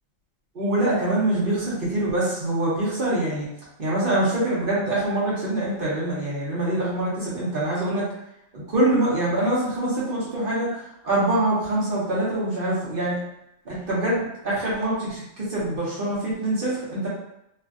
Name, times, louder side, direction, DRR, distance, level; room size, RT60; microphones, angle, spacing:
voice 1, 0.5-3.5 3.8-8.1 8.5-13.2 13.6-17.1, right 1 dB, 45° right, -7 dB, 1.0 m, -24 dB
3.2 x 2.4 x 2.4 m, 0.81 s
omnidirectional pair, 1.4 m